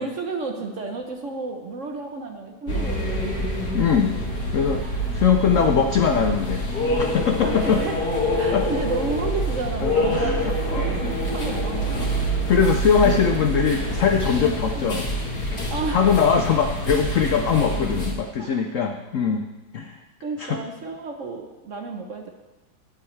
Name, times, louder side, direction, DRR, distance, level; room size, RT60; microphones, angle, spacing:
voice 1, 0.0-3.4 4.8-5.2 7.4-8.0 8.3-12.1 13.0-13.1 14.7-15.0 15.7-16.1 18.4-18.6 20.2-22.3, right 3 dB, 55° right, 4 dB, 0.9 m, -32 dB
sound 1, 2.7-18.1, equal, 55° left, 2.4 m, -26 dB
voice 2, 3.7-4.1 4.5-4.8 5.1-6.7 7.0-7.8 8.5-8.7 9.8-10.8 12.5-15.1 15.9-19.4 19.7-20.0 20.4-20.6, left 6 dB, 85° left, 6 dB, 0.7 m, -21 dB
17.0 x 7.9 x 3.2 m, 1.2 s
omnidirectional pair, 2.1 m